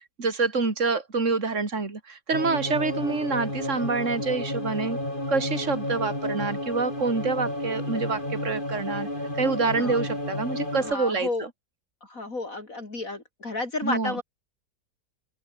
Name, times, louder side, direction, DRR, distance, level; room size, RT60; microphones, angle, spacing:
voice 1, 0.2-5.0 5.3-9.1 9.3-11.5 13.8-14.2, right 4 dB, 45° right, 3.6 m, -27 dB
sound 1, 2.3-10.9, left 1 dB, 30° left, 8.1 m, -31 dB
voice 2, 10.8-11.5 12.0-14.2, left 2 dB, 55° left, 4.7 m, -32 dB
open air
omnidirectional pair, 1.7 m